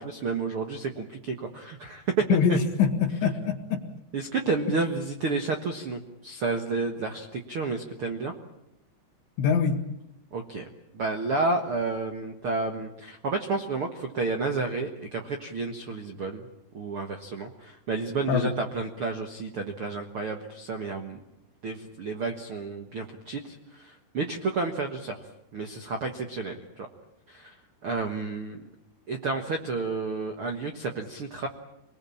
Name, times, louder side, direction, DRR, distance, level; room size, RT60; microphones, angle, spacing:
voice 1, 0.0-2.1 2.5-2.6 4.1-8.3 10.3-10.7 10.9-16.5 16.7-21.2 21.6-25.2 25.5-26.9 27.3-27.5 27.8-28.6 29.1-31.5, right 3 dB, 75° right, 5 dB, 1.2 m, -31 dB
voice 2, 2.3-3.8 9.4-9.8 18.3-18.5, left 6 dB, 80° left, 1 dB, 4.3 m, -24 dB
27.5 x 20.5 x 8.7 m, 0.84 s
omnidirectional pair, 5.0 m